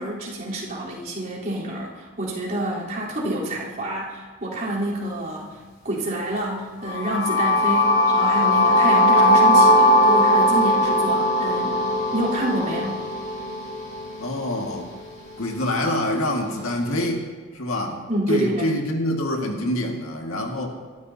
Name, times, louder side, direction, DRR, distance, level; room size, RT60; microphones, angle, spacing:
voice 1, 0.0-5.6 5.8-11.8 12.1-13.0 18.1-18.7, right 1 dB, 40° right, -6 dB, 3.7 m, -28 dB
sound 1, 6.9-14.8, left 1 dB, 40° left, 3.6 m, -19 dB
voice 2, 14.2-14.9 15.4-17.3 17.5-20.7, left 1 dB, 70° left, 1 dB, 1.9 m, -26 dB
22.5 x 13.0 x 2.8 m, 1.5 s
head